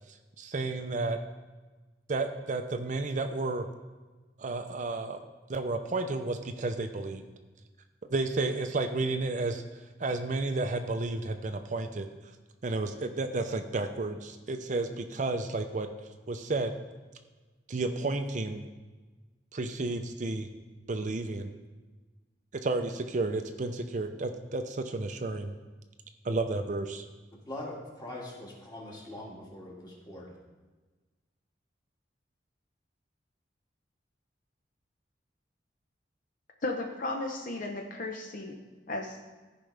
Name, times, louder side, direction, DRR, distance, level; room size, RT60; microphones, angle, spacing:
voice 1, 0.4-1.2 2.1-3.7 4.4-5.2 5.5-7.2 8.1-9.6 10.0-12.1 12.6-15.9 16.3-16.7 17.7-18.6 19.5-20.5 20.9-21.5 22.5-25.5 26.2-27.1, right 3 dB, 45° right, 7 dB, 0.5 m, -32 dB
voice 2, 27.3-30.3, left 1 dB, 25° left, -4 dB, 2.0 m, -42 dB
voice 3, 36.6-38.6 38.9-39.2, left 2 dB, 50° left, 2 dB, 0.7 m, -34 dB
14.0 x 5.2 x 3.3 m, 1.3 s
head